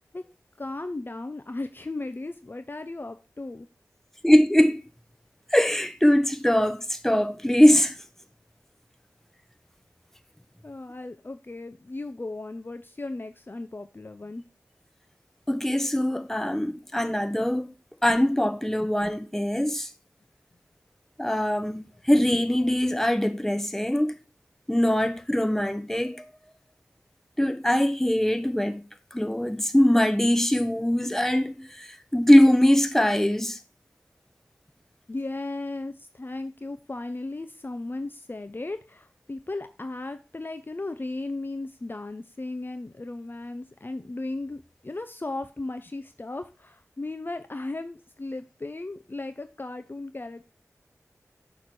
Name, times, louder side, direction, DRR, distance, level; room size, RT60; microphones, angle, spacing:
voice 1, 0.6-3.7 10.6-14.4 21.9-22.0 35.1-50.5, left 2 dB, 35° left, 0.5 m, -36 dB
voice 2, 4.2-4.8 5.5-8.0 15.5-17.7 18.0-19.9 21.2-24.1 24.7-26.2 27.4-28.8 29.1-33.6, left 1 dB, 5° left, 0.9 m, -22 dB
6.5 x 3.2 x 6.0 m
wide cardioid pair, 50°, 6 cm